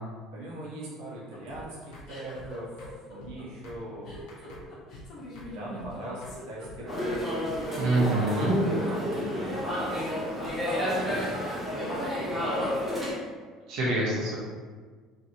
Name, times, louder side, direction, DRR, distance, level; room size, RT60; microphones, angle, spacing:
voice 1, 0.3-4.7 5.4-7.0 9.3-11.3 11.8-13.0, right 1 dB, 85° right, -5 dB, 0.8 m, -42 dB
sound 1, 0.8-7.1, left 1 dB, 40° left, 0.8 m, -44 dB
sound 2, 1.5-1.6 1.9-2.1 2.3-2.5 2.8-2.9 3.2-3.3 3.6-3.8 4.1-4.6 4.9-5.1 5.4-5.5 5.8-5.9 6.2-6.4 6.6-6.8 7.1-7.2 7.5-8.1, left 1 dB, 75° left, 0.6 m, -46 dB
sound 3, 6.9-13.1, equal, 5° right, 0.6 m, -30 dB
voice 2, 7.8-8.6 13.7-14.4, right 2 dB, 55° right, -6 dB, 0.7 m, -25 dB
2.9 x 2.5 x 2.5 m, 1.5 s
cardioid pair, 180°, 0 cm